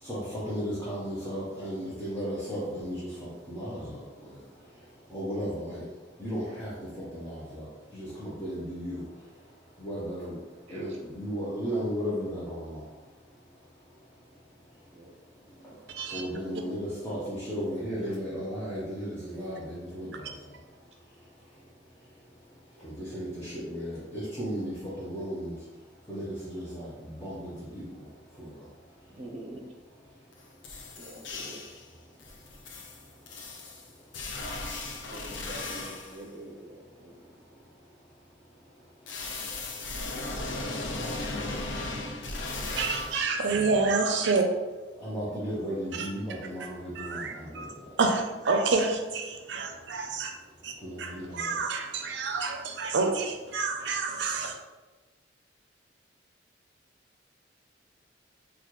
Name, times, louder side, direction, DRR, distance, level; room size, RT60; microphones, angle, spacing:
voice 1, 0.0-9.3 9.8-12.9 15.5-20.6 21.5-21.6 22.8-25.7 26.1-28.7 32.0-32.1 42.4-42.8 43.4-43.7 45.0-48.0 50.7-51.6, equal, 10° left, -10 dB, 0.7 m, -36 dB
voice 2, 10.7-11.0 14.9-15.1 29.1-29.6 31.0-31.6 35.1-37.1, right 1 dB, 35° right, -1 dB, 0.7 m, -45 dB
sound 1, 30.3-30.4 30.6-31.9 32.2-36.2 39.1-43.2, left 2 dB, 85° left, 0.5 m, -36 dB
voice 3, 42.8-44.5 45.9-46.1 46.9-47.7 48.0-50.3 50.6-54.5, right 4 dB, 70° right, 4 dB, 0.5 m, -28 dB
4.1 x 2.3 x 3.0 m, 1.2 s
head